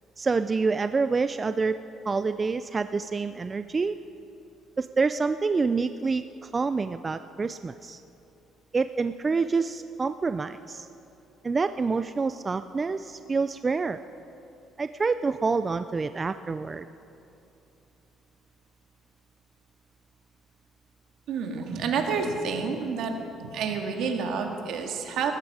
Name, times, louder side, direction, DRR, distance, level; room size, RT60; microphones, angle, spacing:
voice 1, 0.2-1.8 2.1-4.0 4.8-8.0 8.7-10.9 11.4-14.0 14.8-16.9, right 4 dB, 20° right, 11 dB, 0.3 m, -27 dB
voice 2, 21.3-23.1 23.4-25.3, right 5 dB, 65° right, 3 dB, 1.8 m, -29 dB
20.5 x 13.5 x 4.9 m, 2.9 s
cardioid pair, 145°, 0 cm